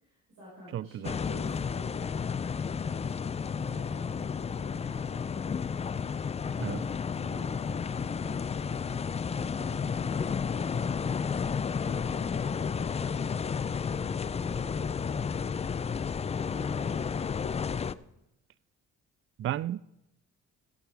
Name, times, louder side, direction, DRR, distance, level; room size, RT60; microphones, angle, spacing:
voice 1, 0.0-2.1 2.6-5.5 6.5-6.9 7.2-11.2, equal, 85° right, 5.1 m, -49 dB
voice 2, 0.7-1.1 6.6-6.8 19.4-19.8, right 12 dB, 45° right, 0.4 m, -33 dB
sound 1, 1.0-17.9, left 6 dB, 20° left, 0.4 m, -32 dB
15.0 x 10.0 x 4.8 m
cardioid pair, 90°, 30 cm